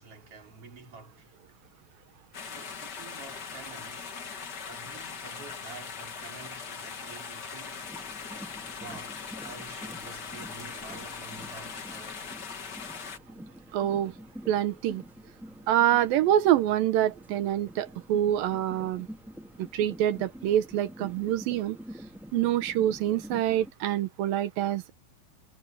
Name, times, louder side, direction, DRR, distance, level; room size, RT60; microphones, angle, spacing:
voice 1, 0.0-1.4 2.5-4.3 4.7-8.3 8.6-12.4, right 4 dB, 35° right, 5.2 m, -49 dB
sound 1, 2.3-13.2, left 6 dB, 45° left, 1.5 m, -40 dB
sound 2, 7.8-23.7, equal, ahead, 2.2 m, -47 dB
voice 2, 13.7-14.1 14.5-15.0 15.7-19.1 19.6-21.8 22.3-24.9, right 12 dB, 75° right, 2.5 m, -26 dB
omnidirectional pair, 4.3 m